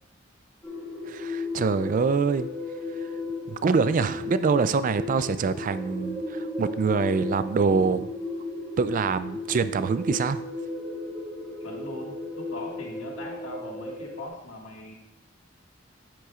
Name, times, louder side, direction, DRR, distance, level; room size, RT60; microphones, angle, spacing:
sound 1, 0.6-14.3, left 2 dB, 10° left, 1.6 m, -35 dB
voice 1, 1.1-2.5 3.5-8.1 8.8-10.4, right 5 dB, 40° right, 13 dB, 0.3 m, -25 dB
voice 2, 11.6-14.9, left 2 dB, 85° left, -1 dB, 1.9 m, -40 dB
9.1 x 8.0 x 2.4 m, 0.78 s
head